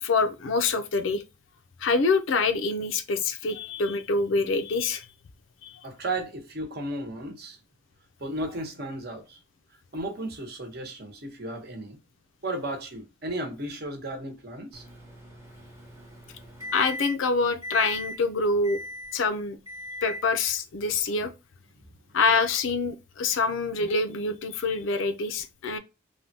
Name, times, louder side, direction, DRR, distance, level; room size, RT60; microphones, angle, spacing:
voice 1, 0.0-1.2 1.8-5.1 5.6-5.8 16.7-18.8 19.1-19.6 20.0-21.3 22.1-25.8, left 4 dB, 75° left, 0.5 m, -26 dB
voice 2, 5.8-7.6 8.2-9.4 9.9-12.0 12.4-14.8, right 1 dB, 50° right, 0.9 m, -34 dB
Microwave oven, 14.7-17.3 17.6-18.2 18.6-19.2 19.7-20.3, left 1 dB, 15° right, 0.8 m, -39 dB
3.4 x 2.2 x 2.6 m
head